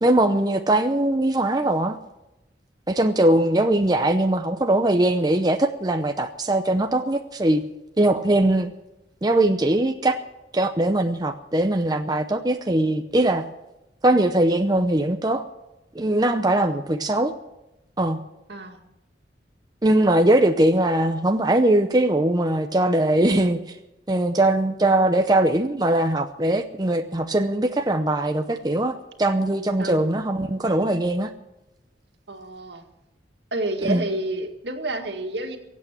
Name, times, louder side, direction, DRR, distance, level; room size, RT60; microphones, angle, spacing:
voice 1, 0.0-2.0 2.9-7.6 8.0-8.7 9.2-10.2 10.5-13.4 14.0-15.4 15.9-17.3 18.0-18.2 19.8-23.8 24.1-31.3 33.8-34.0, right 1 dB, 20° right, 6 dB, 0.7 m, -21 dB
voice 2, 16.4-16.8 18.5-18.8 29.8-30.1 32.3-32.8 33.5-35.6, right 2 dB, 70° right, 4 dB, 2.1 m, -29 dB
22.5 x 8.5 x 7.4 m, 0.95 s
head